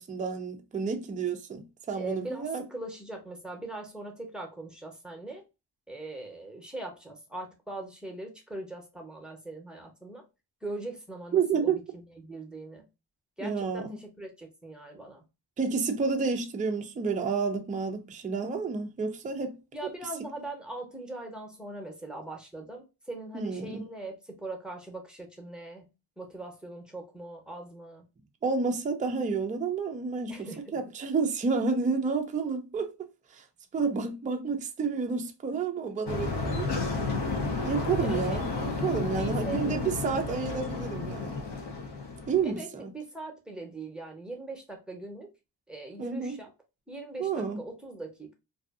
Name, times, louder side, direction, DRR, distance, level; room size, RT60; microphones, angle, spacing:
voice 1, 0.0-2.6 11.3-11.8 13.4-13.9 15.6-19.6 23.3-23.8 28.4-32.9 33.3-33.4 33.7-36.7 37.6-41.4 42.3-42.9 46.0-46.4 47.2-47.6, right 5 dB, 20° right, 0.3 m, -30 dB
voice 2, 1.9-5.4 5.9-10.2 10.6-12.9 13.4-15.3 19.7-25.9 26.2-28.0 30.3-30.8 38.0-38.5 39.2-40.4 42.4-45.3 45.7-46.5 46.9-48.3, right 2 dB, ahead, 0.7 m, -41 dB
sound 1, 36.1-42.5, left 3 dB, 70° left, 0.8 m, -32 dB
2.6 x 2.4 x 2.4 m
wide cardioid pair, 145°, 42 cm